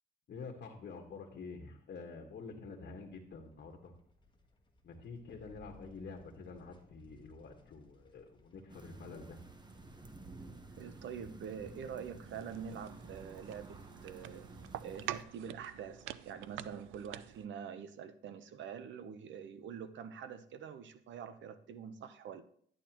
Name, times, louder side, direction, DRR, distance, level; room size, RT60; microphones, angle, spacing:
voice 1, 0.3-3.9 4.8-9.4, left 4 dB, 55° left, 3 dB, 1.5 m, -48 dB
sound 1, 2.5-12.8, left 1 dB, 25° left, 1.5 m, -65 dB
sound 2, 8.7-15.2, right 2 dB, 20° right, 1.1 m, -52 dB
voice 2, 10.7-14.5 14.8-22.4, right 7 dB, 70° right, 11 dB, 0.9 m, -45 dB
Stirring on Stove, 12.3-17.5, right 12 dB, 90° right, 0.5 m, -47 dB
12.0 x 8.9 x 3.0 m, 0.62 s
cardioid pair, 90°, 20 cm